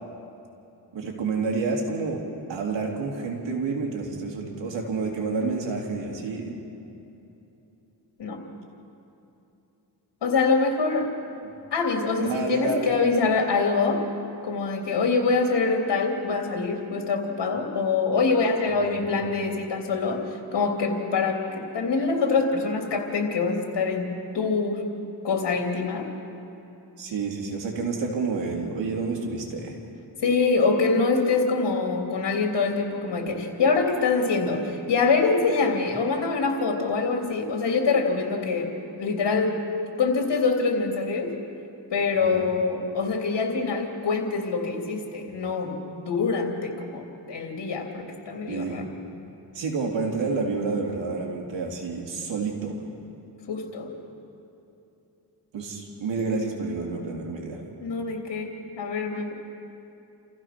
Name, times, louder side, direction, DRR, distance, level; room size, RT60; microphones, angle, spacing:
voice 1, 0.9-2.2 2.5-6.5 12.2-12.9 18.8-19.2 27.0-29.8 42.3-42.4 48.5-48.9 49.5-52.8 55.5-57.6, right 4 dB, 85° right, 0 dB, 3.4 m, -29 dB
voice 2, 10.2-11.1 11.7-14.0 14.4-20.2 20.5-24.1 24.3-24.8 25.2-26.1 30.2-38.7 39.0-39.6 40.0-41.3 41.9-48.8 53.5-53.9 57.8-59.3, left 4 dB, 70° left, 2 dB, 3.2 m, -25 dB
29.0 x 15.5 x 6.1 m, 2.9 s
cardioid pair, 85°, 43 cm